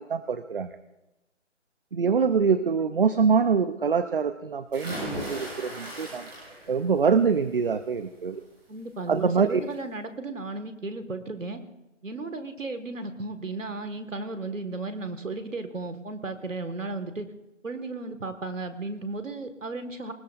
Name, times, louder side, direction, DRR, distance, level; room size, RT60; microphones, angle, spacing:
voice 1, 0.1-0.8 1.9-6.3 6.7-8.4 9.1-9.6, right 5 dB, 45° right, 11 dB, 0.7 m, -24 dB
sound 1, 4.7-6.8 7.2-7.6 9.0-9.1 9.5-9.6, right 1 dB, 20° right, 7.2 m, -37 dB
voice 2, 8.7-11.6 12.0-17.3 17.6-20.1, right 3 dB, 85° right, 9 dB, 1.9 m, -34 dB
21.5 x 19.5 x 2.6 m, 0.96 s
figure-of-eight pair, 165°, 37 cm